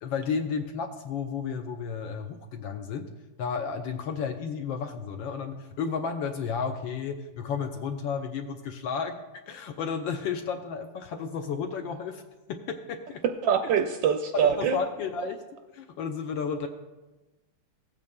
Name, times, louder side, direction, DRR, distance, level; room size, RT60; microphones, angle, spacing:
voice 1, 0.0-3.1 3.4-12.2 12.5-13.2 14.6-15.4 15.7-16.7, left 6 dB, 75° left, 5 dB, 1.2 m, -32 dB
voice 2, 13.4-14.8, right 7 dB, 75° right, 5 dB, 1.1 m, -24 dB
16.5 x 8.4 x 2.2 m, 1.1 s
omnidirectional pair, 2.4 m